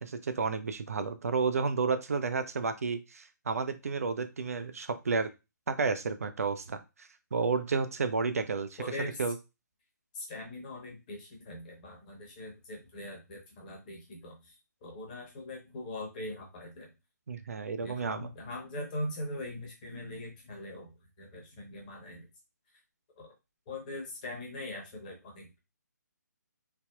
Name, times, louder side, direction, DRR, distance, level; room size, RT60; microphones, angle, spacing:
voice 1, 0.0-5.3 5.7-6.8 7.3-8.8 9.2-9.4 17.3-18.3, right 4 dB, 55° right, 10 dB, 0.4 m, -31 dB
voice 2, 8.8-9.2 10.1-14.5 14.8-16.9 17.8-22.3 23.2-23.3 23.7-25.6, left 1 dB, 25° left, -1 dB, 0.9 m, -41 dB
3.3 x 2.1 x 2.3 m, 0.26 s
figure-of-eight pair, 140°, 10 cm